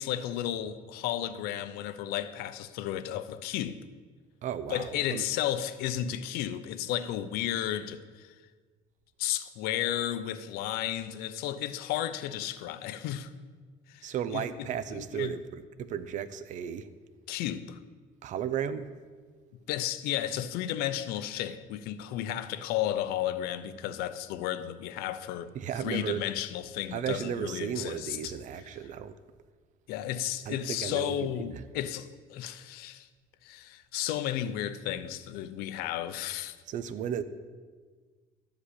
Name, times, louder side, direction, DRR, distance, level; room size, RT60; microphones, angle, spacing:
voice 1, 0.0-3.8 4.7-8.3 9.2-13.3 13.9-15.3 17.3-17.8 19.7-25.5 25.8-28.4 29.9-33.1 33.4-36.6, left 11 dB, 90° left, 0.7 m, -33 dB
voice 2, 4.4-5.2 14.0-16.9 18.2-18.9 25.5-26.2 26.9-29.1 30.5-31.6 36.7-37.2, right 8 dB, 55° right, 0.6 m, -34 dB
12.5 x 5.2 x 8.3 m
cardioid pair, 130°, 16 cm